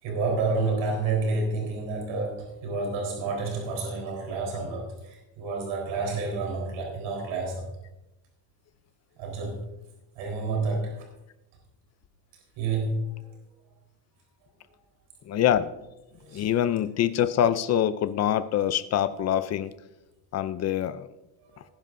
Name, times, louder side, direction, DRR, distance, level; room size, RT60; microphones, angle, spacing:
voice 1, 0.0-7.7 9.2-9.6 10.2-11.0 12.6-13.3 16.2-16.5 21.5-21.6, right 3 dB, 90° right, 0 dB, 4.0 m, -29 dB
voice 2, 15.3-15.7 16.3-19.7 20.3-21.1, left 10 dB, 35° left, 13 dB, 0.4 m, -25 dB
20.0 x 10.5 x 2.6 m, 0.96 s
cardioid pair, 175°, 47 cm